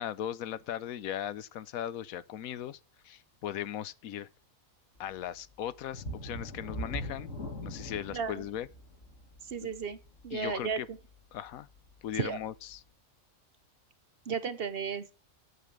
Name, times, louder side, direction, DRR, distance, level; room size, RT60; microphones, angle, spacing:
voice 1, 0.0-4.3 5.0-7.3 7.6-8.7 9.6-9.7 10.3-10.9 11.3-11.7 12.0-12.8, left 11 dB, 85° left, 1.1 m, -38 dB
sound 1, 5.9-11.3 11.8-11.9 12.4-12.5, equal, 60° left, 2.4 m, -41 dB
voice 2, 9.5-10.0 10.2-10.8 12.2-12.4 14.3-15.1, right 6 dB, 50° right, 0.8 m, -33 dB
8.4 x 7.1 x 6.1 m
omnidirectional pair, 1.4 m